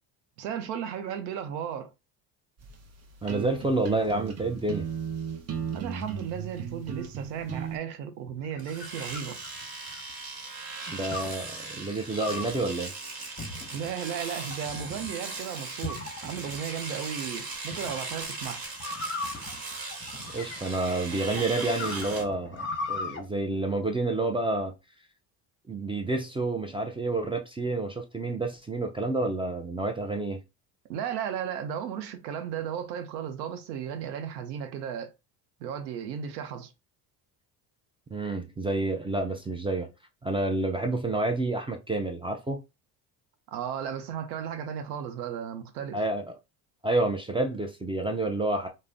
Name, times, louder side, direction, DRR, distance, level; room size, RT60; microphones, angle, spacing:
voice 1, 0.4-1.9 5.7-9.4 13.7-18.6 30.9-35.1 35.6-36.7 43.5-46.0, right 8 dB, 85° right, 0.7 m, -35 dB
sound 1, 2.6-7.8, right 7 dB, 30° right, 0.7 m, -36 dB
voice 2, 3.2-4.9 10.9-12.9 20.3-24.7 25.7-30.4 38.1-39.9 40.2-42.6 45.9-46.3 46.8-48.7, right 2 dB, 15° right, 0.3 m, -29 dB
sound 2, 8.3-10.1 11.1-11.5 12.2-12.6 13.4-13.9 14.5-15.1 15.8-16.6 17.7-18.0 18.8-20.9 21.4-23.2, left 3 dB, 25° left, 0.9 m, -38 dB
Domestic sounds home sounds, 8.6-22.2, right 3 dB, 45° right, 1.2 m, -39 dB
2.4 x 2.1 x 3.4 m
hypercardioid pair, 70°, 50 cm